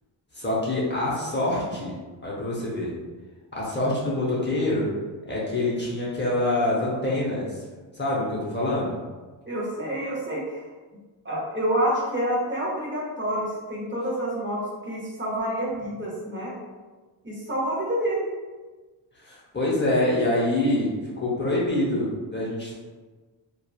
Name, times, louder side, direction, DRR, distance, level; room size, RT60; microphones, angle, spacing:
voice 1, 0.3-2.0 2.2-2.9 3.5-4.9 5.3-7.6 7.9-9.0 19.2-22.7, left 1 dB, 25° left, -7 dB, 0.7 m, -25 dB
voice 2, 9.4-10.6 11.2-16.5 17.2-18.3, right 1 dB, 25° right, -6 dB, 0.8 m, -28 dB
2.9 x 2.3 x 2.3 m, 1.3 s
cardioid pair, 95°, 47 cm